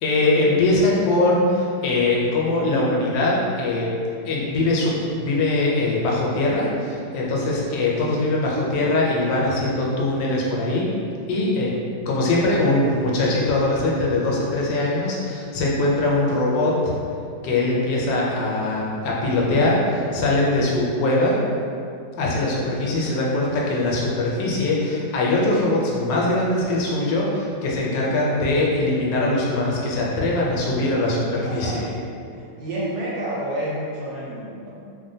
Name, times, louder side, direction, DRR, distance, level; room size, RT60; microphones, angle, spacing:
voice 1, 0.0-3.9 4.2-10.9 11.3-11.7 12.1-17.0 17.4-21.4 22.2-31.8, left 2 dB, 90° left, -4 dB, 1.2 m, -22 dB
voice 2, 31.4-32.0 32.3-34.7, right 1 dB, 70° right, -7 dB, 1.0 m, -30 dB
3.1 x 2.1 x 2.6 m, 2.5 s
omnidirectional pair, 1.9 m